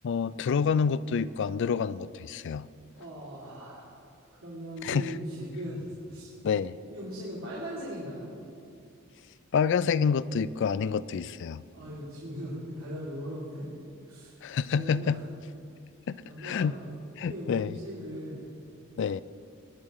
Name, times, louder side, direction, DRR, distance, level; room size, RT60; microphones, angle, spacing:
voice 1, 0.0-2.7 4.8-5.1 6.4-6.8 9.5-11.6 14.4-15.2 16.1-16.7 17.2-17.8 19.0-19.2, left 6 dB, 60° left, 17 dB, 0.4 m, -28 dB
voice 2, 3.0-3.9 4.4-5.8 6.1-6.3 6.9-8.3 11.7-13.7 14.1-14.3 14.7-15.2 16.3-16.8 17.2-18.5, equal, 85° right, -7 dB, 2.8 m, -39 dB
21.0 x 10.5 x 3.8 m, 2.4 s
head